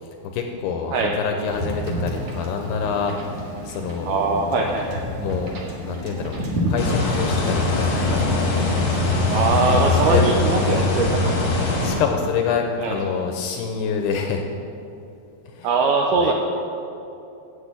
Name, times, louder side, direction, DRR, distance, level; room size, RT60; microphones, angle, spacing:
voice 1, 0.0-4.8 5.2-6.4 6.7-8.2 9.3-10.5 11.2-14.5 15.5-15.7 16.2-16.3, left 6 dB, 85° left, 4 dB, 2.5 m, -27 dB
Wind / Boat Water vehicle, 1.5-10.1, equal, 65° right, 1.7 m, -31 dB
voice 2, 4.1-5.0 9.3-11.4 12.8-13.0 15.6-16.3, right 4 dB, 90° right, 1 dB, 2.2 m, -21 dB
sound 1, 6.8-12.0, left 3 dB, 55° left, 1.4 m, -21 dB
8.2 x 7.5 x 8.2 m, 2.7 s
omnidirectional pair, 5.1 m